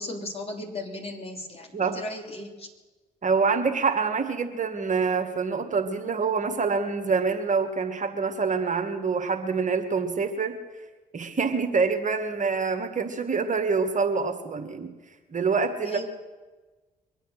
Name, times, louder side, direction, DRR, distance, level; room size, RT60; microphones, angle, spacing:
voice 1, 0.0-2.7 15.8-16.1, left 2 dB, 30° left, 0 dB, 3.2 m, -36 dB
voice 2, 3.2-10.6 11.1-14.9 15.3-16.1, right 5 dB, 40° right, 5 dB, 1.8 m, -26 dB
23.0 x 9.1 x 6.5 m, 1.2 s
hypercardioid pair, 45°, 20 cm